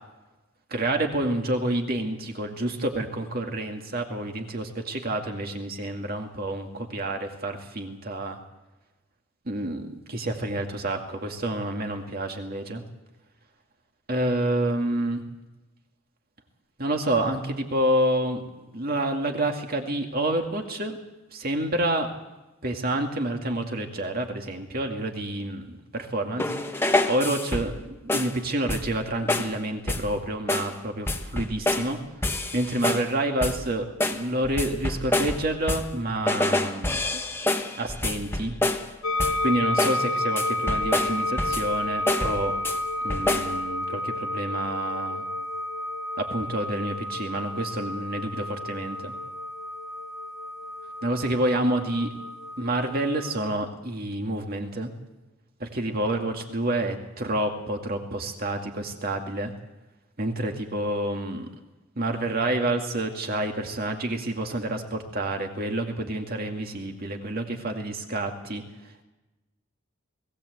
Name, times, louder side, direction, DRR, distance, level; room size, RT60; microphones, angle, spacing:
voice 1, 0.7-8.4 9.5-12.8 14.1-15.2 16.8-18.4 18.7-21.0 21.3-22.1 22.6-26.4 26.7-32.0 32.5-37.2 37.8-38.6 39.4-42.5 43.0-45.2 46.2-49.1 51.0-52.1 52.6-54.9 55.6-59.5 60.2-61.5 62.0-68.6, right 1 dB, 45° right, 3 dB, 2.2 m, -28 dB
sound 1, 26.4-27.8 28.1-28.4 28.7-29.0 29.3-29.6 29.9-30.2 30.5-30.8 31.1-31.9 32.2-33.1 33.4-33.7 34.0-36.0 36.3-38.9 39.2-39.5 39.8-40.1 40.4-41.7 42.1-42.8 43.1-43.6, left 2 dB, 10° left, 1.1 m, -27 dB
sound 2, 39.0-53.3, left 1 dB, 85° left, 1.0 m, -31 dB
20.0 x 16.5 x 8.0 m, 1.1 s
head